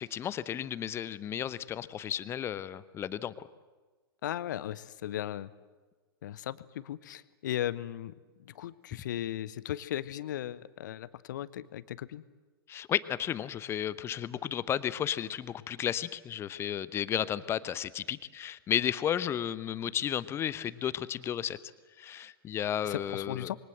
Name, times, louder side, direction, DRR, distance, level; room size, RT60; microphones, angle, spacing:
voice 1, 0.0-3.5 12.7-21.6 22.0-23.5, left 10 dB, 20° left, 17 dB, 0.8 m, -33 dB
voice 2, 4.2-5.5 6.2-8.1 8.5-12.2 22.8-23.6, left 12 dB, 50° left, 17 dB, 1.0 m, -37 dB
26.5 x 23.5 x 7.8 m, 1.3 s
figure-of-eight pair, 105°, 13 cm